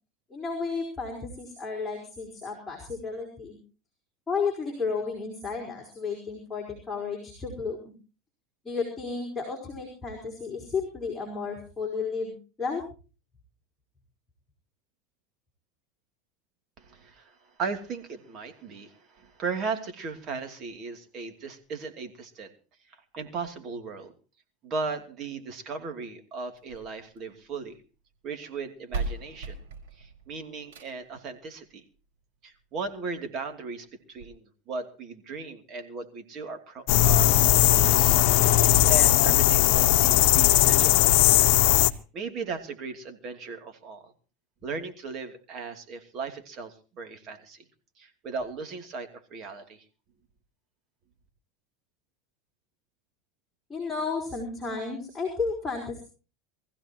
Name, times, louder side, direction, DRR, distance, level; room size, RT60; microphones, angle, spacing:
voice 1, 0.3-3.6 4.3-7.9 8.6-12.8 53.7-56.0, left 4 dB, 10° left, -3 dB, 4.9 m, -32 dB
voice 2, 16.8-22.5 22.9-24.1 24.6-27.8 28.2-29.6 30.0-31.8 32.4-37.3 37.6-38.2 38.9-41.5 41.8-44.1 44.6-47.6 48.0-49.8, right 4 dB, 40° right, 6 dB, 2.8 m, -37 dB
sound 1, 26.5-27.7 28.6-28.7 28.9-31.2 32.5-32.6 33.1-33.2 33.5-33.6 34.2-34.3, right 3 dB, 85° right, 4.8 m, -37 dB
sound 2, 36.9-41.9, left 15 dB, 65° left, 0.9 m, -19 dB
23.5 x 15.5 x 3.0 m, 0.35 s
supercardioid pair, 130°, 0 cm